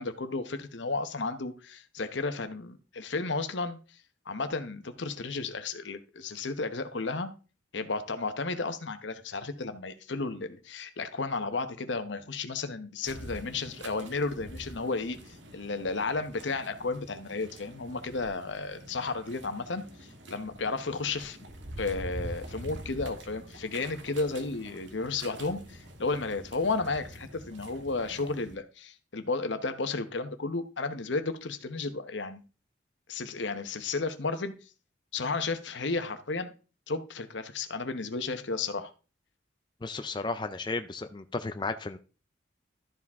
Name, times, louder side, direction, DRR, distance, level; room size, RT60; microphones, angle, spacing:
voice 1, 0.0-3.8 4.3-7.3 7.7-21.4 21.8-32.4 33.1-34.5 35.1-36.5 36.9-38.9, left 3 dB, 75° left, 1.0 m, -33 dB
sound 1, 13.0-28.6, right 1 dB, 80° right, 1.5 m, -45 dB
voice 2, 39.8-42.0, left 3 dB, 25° left, 0.4 m, -34 dB
12.5 x 4.9 x 3.5 m
head